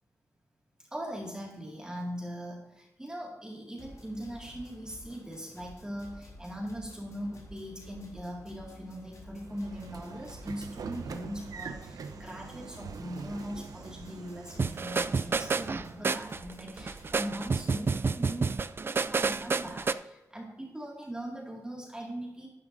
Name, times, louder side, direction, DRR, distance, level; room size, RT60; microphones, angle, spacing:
voice 1, 0.9-18.5 18.8-22.5, equal, 10° right, -3 dB, 2.1 m, -40 dB
sound 1, 3.8-18.1, left 1 dB, 65° left, 3.3 m, -52 dB
Train / Sliding door, 9.4-15.9, right 5 dB, 85° right, 0.7 m, -44 dB
sound 2, 14.6-19.9, right 4 dB, 40° right, 0.3 m, -29 dB
12.0 x 9.7 x 2.7 m, 0.97 s
wide cardioid pair, 100°, 6 cm